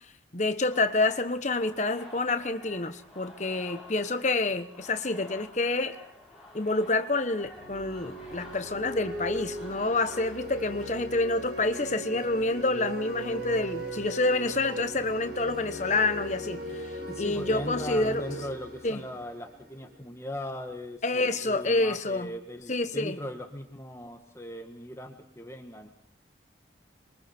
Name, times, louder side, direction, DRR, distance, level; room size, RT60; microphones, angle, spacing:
voice 1, 0.3-6.0 6.5-16.9 17.2-18.2 18.8-19.0 21.0-22.3 22.7-23.2, left 2 dB, 40° left, 1.2 m, -28 dB
sound 1, 0.7-11.2, left 1 dB, 5° right, 6.7 m, -50 dB
sound 2, 7.4-20.1, equal, 55° right, 4.8 m, -38 dB
voice 2, 17.1-25.9, left 1 dB, 15° left, 1.7 m, -39 dB
27.0 x 23.5 x 4.5 m
head